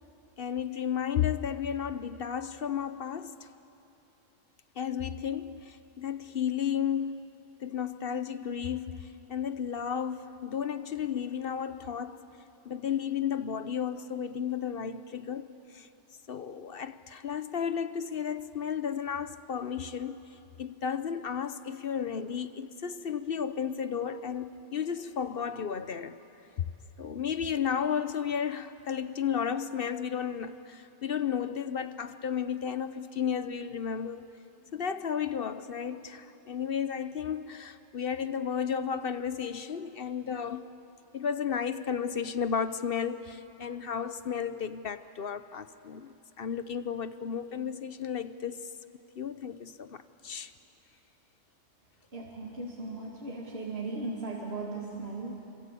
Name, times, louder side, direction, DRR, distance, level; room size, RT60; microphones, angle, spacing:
voice 1, 0.4-3.5 4.8-7.3 7.6-12.2 12.6-15.5 15.7-15.9 16.3-20.2 20.6-26.2 26.6-26.7 27.0-34.3 34.7-40.7 41.1-48.6 49.2-50.5, left 7 dB, 55° left, 0.9 m, -33 dB
voice 2, 52.1-55.4, right 3 dB, 55° right, 2.7 m, -37 dB
27.5 x 25.0 x 8.4 m
omnidirectional pair, 1.3 m